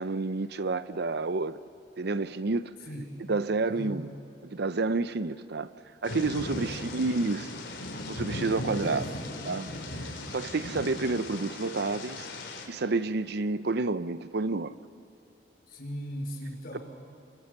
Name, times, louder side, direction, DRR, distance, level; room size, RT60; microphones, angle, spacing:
voice 1, 0.0-1.6 2.0-2.7 3.3-4.1 4.4-5.7 6.0-7.5 8.1-9.1 9.4-9.7 10.3-12.3 12.7-14.7, right 3 dB, 65° right, 0.7 m, -29 dB
voice 2, 2.8-3.2 3.7-4.0 6.6-6.8 8.7-9.1 15.7-16.8, equal, 55° left, 5.7 m, -38 dB
Thunder / Rain, 6.0-12.7, left 2 dB, 80° left, 3.5 m, -38 dB
29.0 x 24.0 x 6.8 m
head